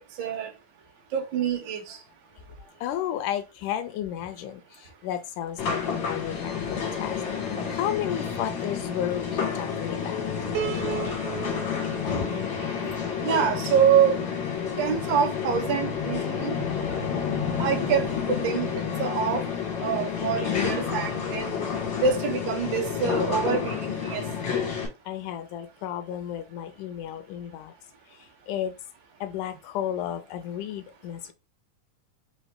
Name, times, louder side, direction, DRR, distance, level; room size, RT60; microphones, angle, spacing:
voice 1, 0.2-0.5 1.1-2.0 12.1-12.4 12.8-12.9 13.2-14.2 14.8-16.6 17.6-18.7 19.0-19.4 19.8-21.5 22.0-24.2, right 7 dB, 80° right, 1.0 m, -25 dB
voice 2, 2.6-7.2 7.7-10.2 25.1-27.7 28.1-28.2 28.5-28.7 29.2-31.3, left 10 dB, 80° left, 2.0 m, -33 dB
sound 1, 5.6-24.9, left 7 dB, 50° left, 1.5 m, -29 dB
Piano, 10.5-13.8, right 9 dB, 65° right, 2.0 m, -36 dB
5.2 x 3.5 x 2.2 m
omnidirectional pair, 3.9 m